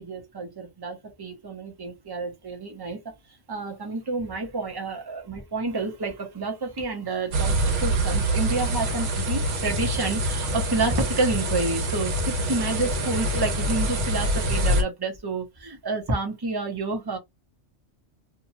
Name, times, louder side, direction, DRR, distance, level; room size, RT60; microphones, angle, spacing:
voice 1, 0.0-3.0 3.5-17.2, right 3 dB, 25° right, 0.7 m, -29 dB
sound 1, 7.3-14.8, right 1 dB, 75° right, 1.1 m, -25 dB
2.8 x 2.2 x 2.8 m
omnidirectional pair, 1.2 m